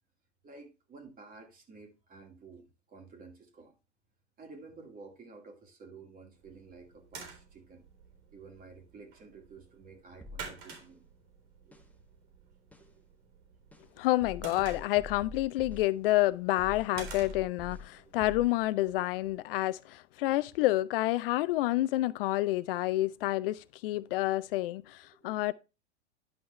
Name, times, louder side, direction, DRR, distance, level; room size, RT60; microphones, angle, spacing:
voice 1, 0.4-3.7 4.4-7.8 8.3-11.1 11.7-11.8 12.8-12.9 14.7-15.2 18.0-18.4 25.1-25.3, right 4 dB, 25° right, 2.2 m, -52 dB
sound 1, 6.3-19.4, right 6 dB, 60° right, 3.7 m, -51 dB
sound 2, 10.2-10.8 11.7-11.8 12.7-12.9 13.7-13.8 14.2-15.9 16.6-17.9 18.2-18.5, left 3 dB, 5° left, 1.3 m, -45 dB
voice 2, 14.0-25.0 25.2-25.5, left 17 dB, 55° left, 0.6 m, -29 dB
11.0 x 5.4 x 3.2 m
hypercardioid pair, 95°, 34 cm